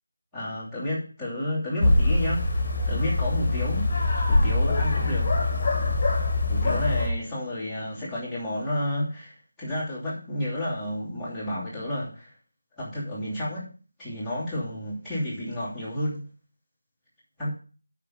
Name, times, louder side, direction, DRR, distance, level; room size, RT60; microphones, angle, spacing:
voice 1, 0.3-2.6 2.9-5.3 6.5-12.3 12.8-13.7 14.0-16.2 17.4-17.5, left 1 dB, ahead, -12 dB, 2.8 m, -31 dB
sound 1, 1.8-7.1, left 2 dB, 20° left, 2.4 m, -23 dB
8.2 x 5.9 x 7.2 m, 0.38 s
figure-of-eight pair, 165°, 0 cm